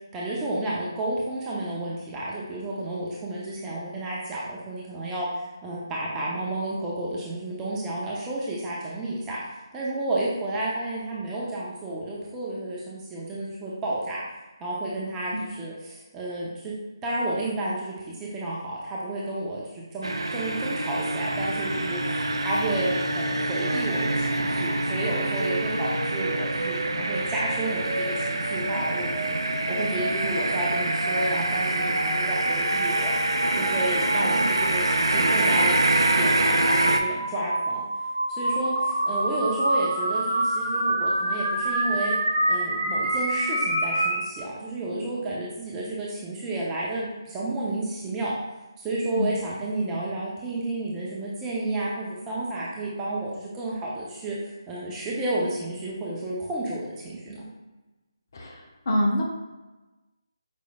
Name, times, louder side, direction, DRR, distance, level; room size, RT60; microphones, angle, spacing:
voice 1, 0.1-5.3 5.6-9.4 9.7-14.2 14.6-16.8 17.0-29.4 29.7-33.1 33.5-35.8 36.2-37.8 38.4-42.2 42.5-48.3 48.8-57.5, right 2 dB, 15° right, -6 dB, 0.6 m, -31 dB
sound 1, 20.0-37.0, right 2 dB, 80° right, 0.4 m, -26 dB
sound 2, 25.3-44.2, right 1 dB, 35° right, 1.5 m, -29 dB
voice 2, 58.3-59.2, left 1 dB, 50° left, 0 dB, 0.7 m, -26 dB
5.1 x 3.1 x 2.3 m, 1.1 s
figure-of-eight pair, 155°, 2 cm